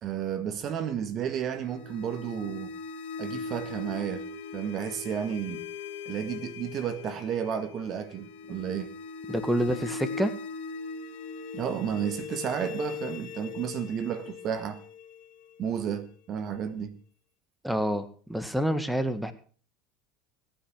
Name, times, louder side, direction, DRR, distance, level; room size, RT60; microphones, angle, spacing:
voice 1, 0.0-2.7 3.2-4.3 4.5-5.6 6.1-8.9 11.5-14.8 15.6-17.0, right 8 dB, 45° right, 1.7 m, -32 dB
sound 1, 1.4-16.4, left 4 dB, 70° left, 2.5 m, -40 dB
voice 2, 9.3-10.3 17.6-19.3, equal, ahead, 1.7 m, -28 dB
18.0 x 9.0 x 6.1 m
hypercardioid pair, 90°, 0 cm